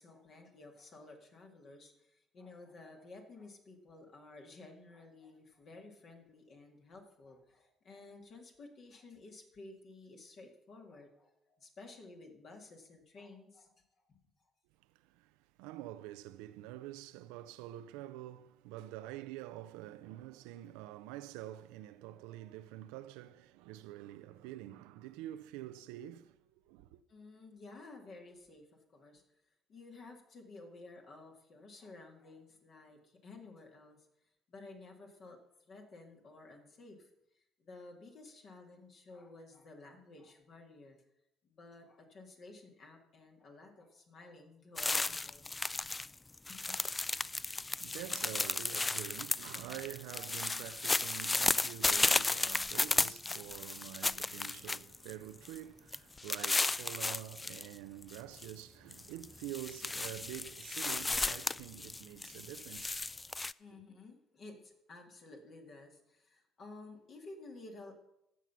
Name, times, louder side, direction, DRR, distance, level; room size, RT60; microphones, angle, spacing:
voice 1, 0.0-13.7 14.1-14.5 27.1-29.2 29.7-34.1 34.5-35.4 35.7-37.1 37.3-41.0 41.4-45.8 46.5-46.8 53.0-53.5 63.6-67.9, left 3 dB, 55° left, 2.0 m, -54 dB
voice 2, 14.9-27.0 47.1-63.1 63.7-63.8, right 14 dB, 75° right, 0.4 m, -47 dB
sound 1, 44.8-46.1 46.3-55.1 55.4-55.6 55.9-57.7 58.0-58.5 58.9-63.5, left 3 dB, 20° left, 0.3 m, -34 dB
14.5 x 5.8 x 5.6 m
hypercardioid pair, 55°, 0 cm